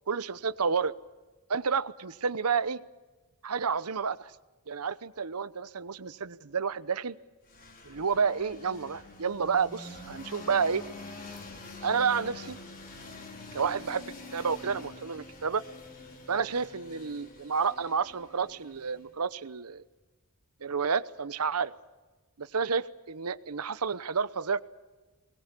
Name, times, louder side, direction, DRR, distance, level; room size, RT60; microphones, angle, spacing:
voice 1, 0.1-0.9 1.5-2.8 3.4-4.3 4.7-7.2 7.8-10.8 11.8-12.6 13.5-15.6 16.3-19.8 20.6-21.7 22.4-24.6, right 5 dB, 90° right, 16 dB, 0.9 m, -30 dB
sound 1, 7.5-19.2, left 2 dB, 40° left, 3.7 m, -46 dB
24.0 x 21.0 x 8.3 m, 1.2 s
head